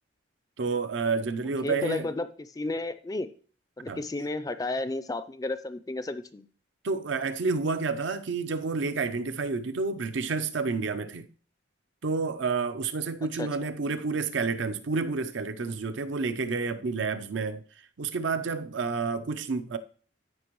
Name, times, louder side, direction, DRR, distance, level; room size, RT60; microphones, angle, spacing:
voice 1, 0.6-2.2 3.9-4.0 6.8-11.3 12.0-17.6 18.0-19.8, right 4 dB, 80° right, 0.6 m, -29 dB
voice 2, 1.6-3.3 3.8-6.5 13.4-13.5, left 2 dB, 20° left, 0.4 m, -32 dB
13.5 x 5.2 x 3.0 m
head